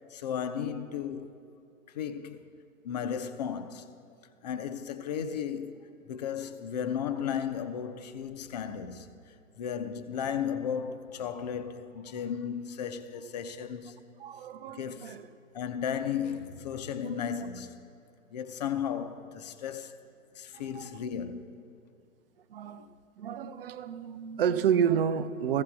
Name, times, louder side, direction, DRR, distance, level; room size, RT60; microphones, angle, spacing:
voice 1, 0.1-1.4 1.9-2.5 2.8-3.9 4.4-5.8 6.1-14.0 14.4-15.2 15.5-17.7 18.3-20.0 20.3-21.6 22.7-22.9, left 8 dB, 30° left, 0.5 m, -35 dB
voice 2, 14.2-15.3 17.0-17.2 20.6-21.0 22.5-22.9 23.2-25.6, right 8 dB, 45° right, 0.5 m, -30 dB
16.5 x 15.0 x 2.3 m
figure-of-eight pair, 125°, 42 cm